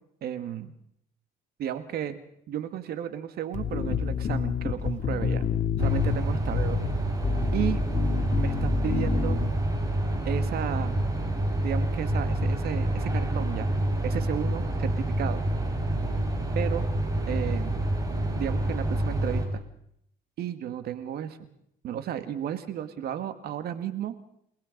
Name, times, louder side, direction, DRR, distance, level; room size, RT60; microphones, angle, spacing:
voice 1, 0.2-0.7 1.6-2.2 2.5-5.5 5.8-6.8 7.5-7.8 8.4-9.4 10.3-10.9 11.6-13.7 14.0-15.4 16.6-16.9 17.3-17.8 18.4-19.6 20.4-21.4 21.8-24.1, right 10 dB, 65° right, 11 dB, 1.9 m, -33 dB
sound 1, 3.5-9.5, left 7 dB, 45° left, 2.3 m, -29 dB
sound 2, 5.8-19.5, right 1 dB, 20° right, 4.9 m, -28 dB
29.0 x 19.0 x 5.3 m, 0.73 s
cardioid pair, 110°, 17 cm